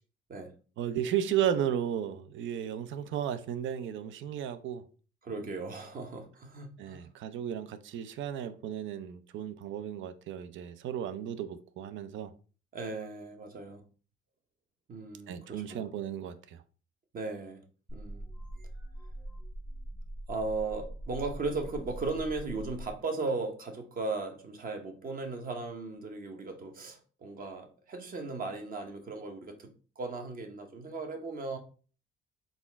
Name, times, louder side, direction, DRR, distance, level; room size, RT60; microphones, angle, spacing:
voice 1, 0.8-4.8 6.8-12.3 15.3-16.6, right 9 dB, 65° right, 0.5 m, -34 dB
voice 2, 5.2-7.1 12.7-13.8 14.9-15.9 17.1-17.6 17.9-18.2 20.3-31.6, right 3 dB, 45° right, 0.9 m, -37 dB
sound 1, 17.9-22.9, right 1 dB, 10° right, 0.7 m, -42 dB
4.1 x 2.4 x 3.9 m
cardioid pair, 110°, 21 cm